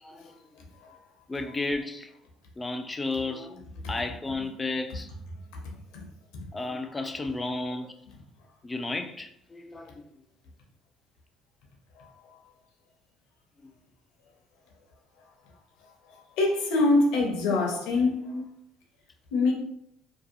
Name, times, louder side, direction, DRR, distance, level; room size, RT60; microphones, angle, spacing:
voice 1, 0.0-0.4 1.3-2.1 2.6-5.1 6.5-7.9 8.6-10.0 17.5-17.6 18.3-18.4, left 2 dB, 20° left, 0.4 m, -33 dB
voice 2, 16.4-18.2 19.3-19.5, left 2 dB, 80° left, 0.7 m, -23 dB
2.7 x 2.2 x 2.5 m
supercardioid pair, 80°, 0 cm